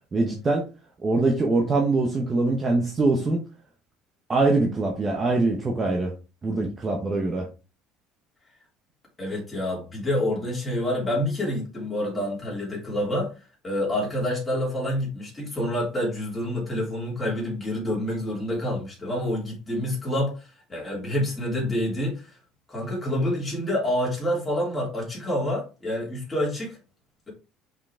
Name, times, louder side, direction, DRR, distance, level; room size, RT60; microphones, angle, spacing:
voice 1, 0.1-0.6 1.0-3.4 4.3-6.1 6.4-7.5, right 3 dB, 20° right, 0.9 m, -23 dB
voice 2, 9.2-13.3 13.6-22.4 22.7-26.8, left 1 dB, 10° left, 3.2 m, -27 dB
5.4 x 5.1 x 3.6 m
cardioid pair, 170°, 0 cm